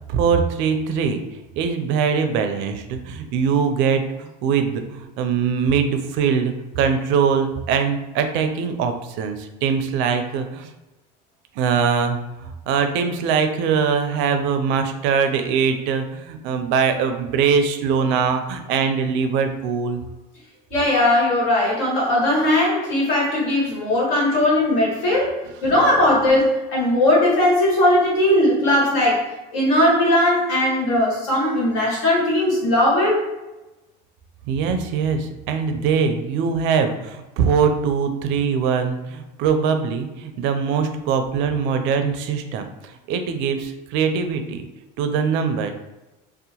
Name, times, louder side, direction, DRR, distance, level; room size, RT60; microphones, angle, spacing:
voice 1, 0.1-1.2 1.6-10.7 11.6-20.0 34.5-44.6 45.0-45.8, right 6 dB, 65° right, 7 dB, 0.4 m, -22 dB
voice 2, 20.7-29.2 29.5-33.2, left 1 dB, 70° left, -4 dB, 1.3 m, -18 dB
2.7 x 2.1 x 2.8 m, 1.0 s
supercardioid pair, 115°, 21 cm